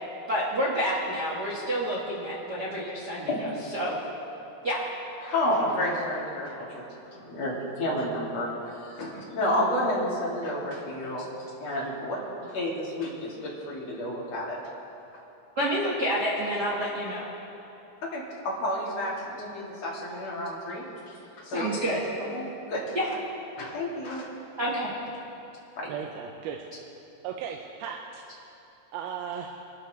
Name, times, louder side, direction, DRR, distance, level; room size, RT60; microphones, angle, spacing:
voice 1, 0.3-3.3 3.7-4.0 4.6-4.8 15.6-17.3 21.5-22.0 22.9-23.1 24.6-24.9, equal, 40° right, -5 dB, 1.6 m, -28 dB
voice 2, 5.2-11.3 11.6-14.6 18.0-21.7 22.0-22.8 23.6-24.3 25.8-25.9, left 1 dB, 45° left, -5 dB, 3.7 m, -31 dB
voice 3, 25.9-26.6 27.2-28.2 28.9-29.6, right 7 dB, 85° right, 1 dB, 2.7 m, -36 dB
25.0 x 13.0 x 3.4 m, 2.8 s
omnidirectional pair, 4.4 m